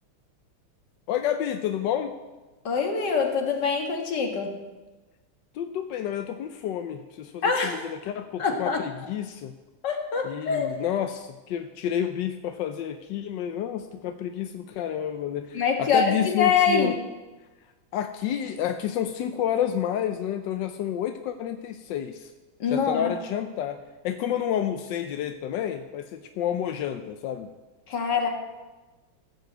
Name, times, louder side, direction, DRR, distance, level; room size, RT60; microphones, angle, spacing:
voice 1, 1.1-2.1 5.5-9.5 10.2-16.9 17.9-22.3 22.7-27.5, left 10 dB, 70° left, 7 dB, 1.1 m, -30 dB
voice 2, 2.6-4.6 7.4-7.9 8.4-8.8 9.8-10.8 15.5-16.9 22.6-23.1 27.9-28.3, left 5 dB, 55° left, 3 dB, 2.1 m, -24 dB
15.5 x 5.5 x 7.9 m, 1.2 s
omnidirectional pair, 2.4 m